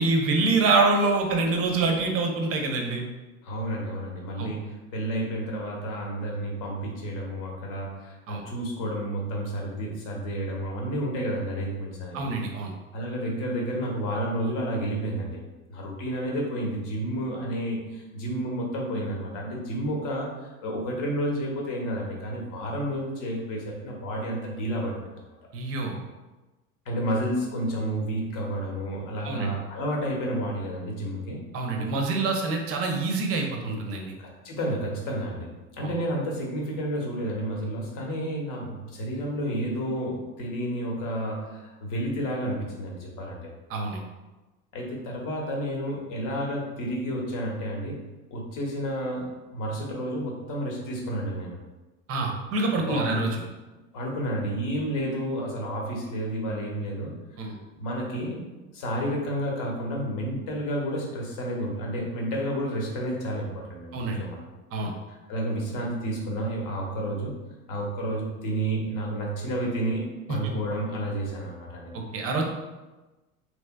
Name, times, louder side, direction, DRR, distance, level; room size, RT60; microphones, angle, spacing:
voice 1, 0.0-3.0 4.4-4.5 8.3-8.4 12.1-12.7 25.5-25.9 29.2-29.5 31.5-34.1 35.8-35.9 43.7-44.0 52.1-53.3 57.4-57.6 63.9-64.2 64.7-64.9 70.4-70.5 71.9-72.5, right 3 dB, 35° right, 2 dB, 0.6 m, -26 dB
voice 2, 3.4-12.3 12.9-15.4 15.7-20.3 20.6-25.1 26.9-31.4 34.2-43.4 44.7-48.0 48.3-51.6 52.9-53.2 53.9-57.1 57.8-64.4 65.1-67.3 67.7-71.9, right 1 dB, 45° left, -1 dB, 1.0 m, -31 dB
3.2 x 2.9 x 2.2 m, 1.1 s
hypercardioid pair, 80°, 42 cm